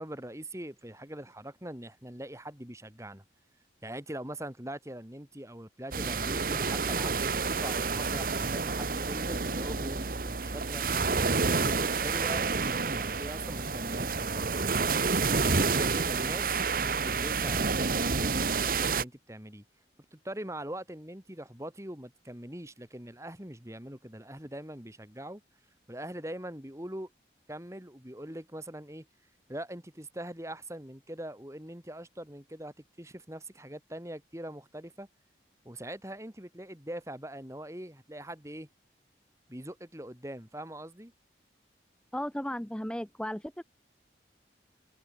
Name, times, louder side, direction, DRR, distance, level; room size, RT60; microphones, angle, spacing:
voice 1, 0.0-3.2 3.8-14.7 15.3-19.6 20.1-25.4 25.9-27.1 27.5-29.1 29.5-35.1 35.6-38.7 39.5-41.1, right 1 dB, 15° right, 3.1 m, -42 dB
sound 1, 5.9-19.0, right 4 dB, 50° right, 1.2 m, -29 dB
voice 2, 42.1-43.6, equal, 5° left, 0.9 m, -35 dB
head